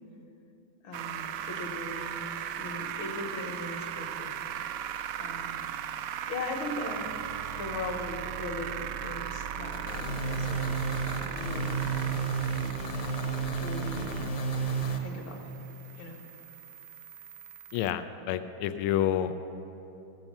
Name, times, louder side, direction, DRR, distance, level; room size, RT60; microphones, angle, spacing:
voice 1, 0.8-2.3 2.6-4.3 5.2-5.7 6.3-7.2 7.6-10.8 11.2-12.0 13.5-14.3 15.0-15.5 16.0-16.2, left 2 dB, 65° left, 2 dB, 2.0 m, -39 dB
sound 1, 0.9-17.9, right 10 dB, 85° right, 0.9 m, -38 dB
sound 2, 9.6-15.0, right 4 dB, 45° left, 1.0 m, -31 dB
voice 2, 17.7-19.3, left 11 dB, 85° left, 10 dB, 1.5 m, -29 dB
15.5 x 7.7 x 7.2 m, 3.0 s
omnidirectional pair, 2.4 m